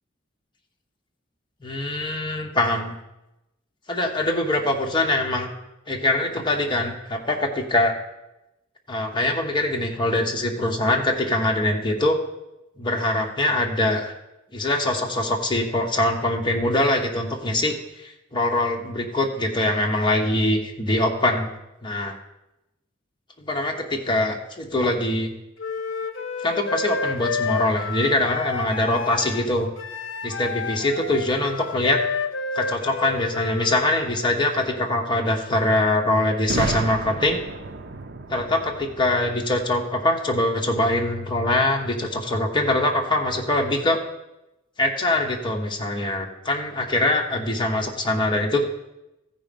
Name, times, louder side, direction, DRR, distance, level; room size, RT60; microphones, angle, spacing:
voice 1, 1.6-2.9 3.9-5.5 5.9-7.9 8.9-12.2 12.8-14.1 14.5-17.7 18.3-21.5 21.8-22.2 23.4-25.3 26.4-29.7 30.2-32.0 32.5-37.4 38.3-44.0 44.8-48.6, left 1 dB, 25° left, 2 dB, 1.0 m, -23 dB
Wind instrument woodwind instrument, 25.6-33.9, left 5 dB, 70° left, 0.7 m, -30 dB
Boom, 36.5-40.3, right 3 dB, 55° right, 0.7 m, -32 dB
14.5 x 5.0 x 5.3 m, 0.94 s
head